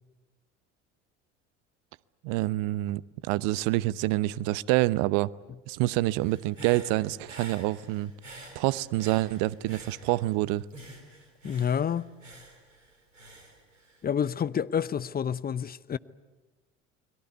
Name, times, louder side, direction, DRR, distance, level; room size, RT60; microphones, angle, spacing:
voice 1, 2.2-5.3 5.7-8.1 8.5-10.6, right 18 dB, 60° right, 0.8 m, -27 dB
Human voice / Breathing, 6.2-10.4 10.7-14.3, right 2 dB, 85° right, 4.1 m, -49 dB
voice 2, 11.4-12.1 14.0-16.0, left 8 dB, 25° left, 0.8 m, -28 dB
29.5 x 22.0 x 8.3 m
figure-of-eight pair, 65°, 36 cm